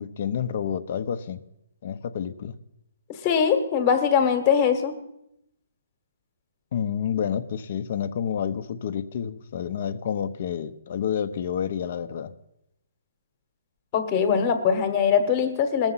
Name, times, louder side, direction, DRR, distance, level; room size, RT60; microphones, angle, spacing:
voice 1, 0.0-1.4 1.8-2.6 6.7-12.3, left 8 dB, 45° left, 12 dB, 0.7 m, -29 dB
voice 2, 3.2-4.9 13.9-15.9, left 7 dB, 25° left, 8 dB, 1.2 m, -21 dB
19.0 x 7.1 x 5.6 m, 0.82 s
hypercardioid pair, 165°, 0 cm